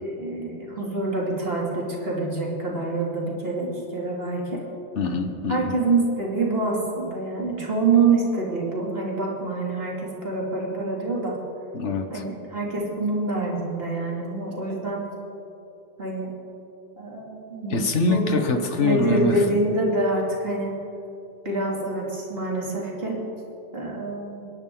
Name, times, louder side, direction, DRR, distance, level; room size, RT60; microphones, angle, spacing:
voice 1, 0.0-4.6 5.5-11.4 12.1-15.0 16.0-16.3 17.0-17.8 18.1-18.4 18.8-20.7 21.4-23.2 23.7-24.4, right 3 dB, 55° right, -3 dB, 3.1 m, -26 dB
voice 2, 4.9-5.7 11.7-12.2 17.7-19.5, left 2 dB, 75° left, 6 dB, 1.6 m, -24 dB
29.0 x 11.0 x 3.9 m, 2.8 s
omnidirectional pair, 1.2 m